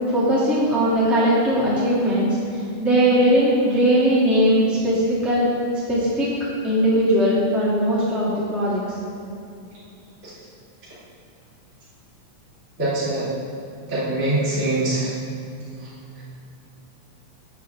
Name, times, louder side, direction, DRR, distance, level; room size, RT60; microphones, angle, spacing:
voice 1, 0.1-2.3 2.8-5.5 5.9-6.3 6.6-8.8, equal, ahead, -10 dB, 2.1 m, -19 dB
voice 2, 12.8-13.3 13.9-15.1 15.8-15.9, right 2 dB, 30° right, -11 dB, 2.5 m, -23 dB
13.5 x 8.3 x 3.6 m, 2.6 s
omnidirectional pair, 3.4 m